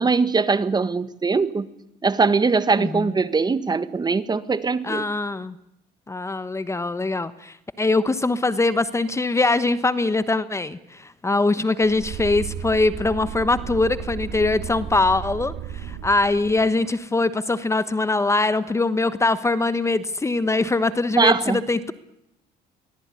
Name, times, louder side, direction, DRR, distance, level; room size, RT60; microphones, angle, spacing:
voice 1, 0.0-1.7 2.0-5.1 21.2-21.6, right 4 dB, 25° right, 1.5 m, -21 dB
voice 2, 2.8-3.1 4.8-5.5 6.1-21.9, left 3 dB, 15° left, 1.2 m, -22 dB
sound 1, 11.8-16.7, right 9 dB, 65° right, 4.3 m, -34 dB
24.5 x 19.0 x 9.7 m
cardioid pair, 110°, 17 cm